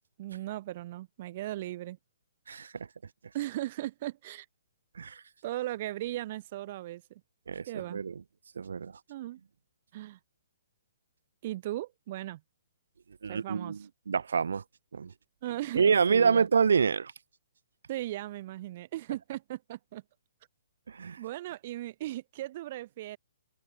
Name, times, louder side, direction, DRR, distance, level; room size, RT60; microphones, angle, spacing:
voice 1, 0.2-2.0 3.3-4.5 5.4-7.2 7.7-8.0 9.1-9.4 9.9-10.2 11.4-12.4 13.3-13.8 15.4-16.5 17.9-20.0 21.2-23.2, right 15 dB, 35° right, 5.5 m, -37 dB
voice 2, 2.5-2.9 4.9-5.2 7.5-8.2 8.6-9.0 13.2-14.6 14.9-15.1 15.7-17.1 20.9-21.2, right 6 dB, 85° right, 7.4 m, -27 dB
open air
hypercardioid pair, 165°, 0 cm